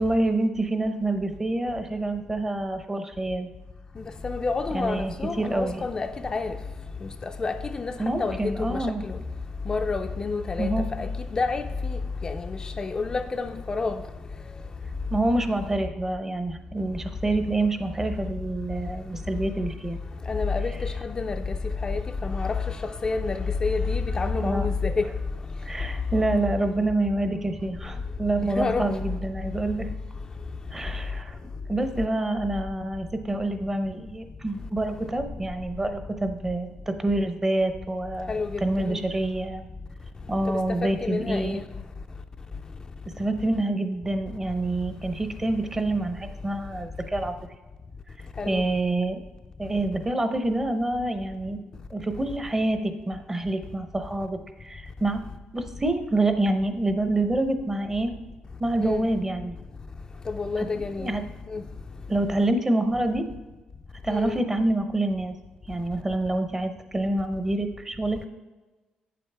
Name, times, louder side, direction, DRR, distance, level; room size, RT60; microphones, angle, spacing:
voice 1, 0.0-3.5 4.7-5.8 8.0-9.0 10.6-10.9 15.1-20.0 24.4-24.7 25.6-29.9 30.7-31.4 31.7-39.7 40.3-41.6 43.2-47.3 48.5-49.2 49.6-51.6 51.9-55.2 55.5-58.1 58.6-59.6 60.6-61.2 62.1-63.2 64.0-65.3 65.7-68.3, right 2 dB, 15° right, 0.7 m, -27 dB
voice 2, 4.0-6.6 7.0-7.9 8.2-9.2 9.7-14.0 20.3-21.6 21.8-22.8 23.0-25.1 28.4-28.9 38.3-39.0 40.5-41.7 48.4-48.6 58.8-59.1 60.3-61.1 61.5-61.6 64.1-64.4, left 4 dB, 30° left, 0.4 m, -29 dB
8.5 x 7.6 x 3.3 m
cardioid pair, 115°, 3 cm